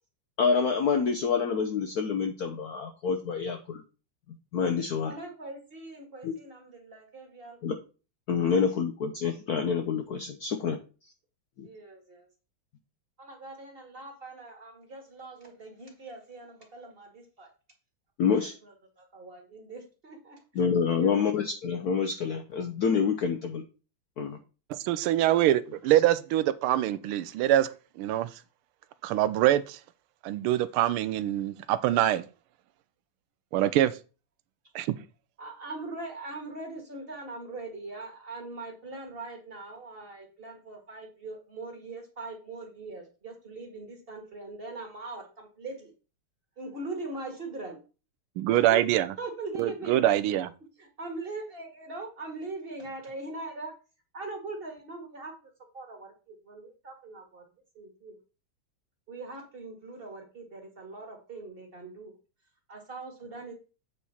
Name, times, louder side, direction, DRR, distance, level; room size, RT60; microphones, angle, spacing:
voice 1, 0.4-3.8 4.5-5.1 6.2-6.4 7.6-7.8 8.3-10.8 11.6-11.7 18.2-18.5 20.5-23.6 24.2-24.4, left 6 dB, 70° left, 0.9 m, -27 dB
voice 2, 5.0-7.6 8.4-8.5 11.6-12.3 13.2-17.5 18.3-18.5 19.0-20.4 20.9-21.2 35.4-45.9 46.6-47.8 48.5-48.8 49.2-50.0 50.8-53.7 54.1-55.3 55.7-57.4 57.8-58.2 59.1-62.1 62.7-63.5, right 2 dB, 30° right, 1.8 m, -41 dB
voice 3, 24.7-28.3 29.0-29.8 30.2-32.2 33.5-34.0 34.7-34.9 48.4-49.1 49.6-50.5, right 13 dB, 80° right, 1.4 m, -24 dB
8.2 x 4.5 x 4.2 m
omnidirectional pair, 2.4 m